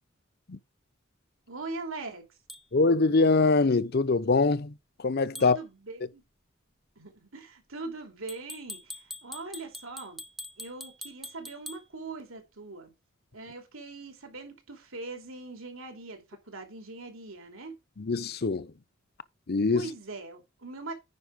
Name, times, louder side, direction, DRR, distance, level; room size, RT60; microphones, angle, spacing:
voice 1, 1.5-2.3 5.3-6.2 7.0-10.2 10.6-12.9 13.3-17.8 19.7-20.9, right 3 dB, 90° right, 2.8 m, -41 dB
sound 1, 2.5-2.6 5.4-5.6 8.3-11.8, left 1 dB, ahead, 0.6 m, -43 dB
voice 2, 2.7-4.7 5.0-5.6 18.0-18.7 19.5-19.9, left 3 dB, 50° left, 0.7 m, -23 dB
9.6 x 5.4 x 5.1 m
head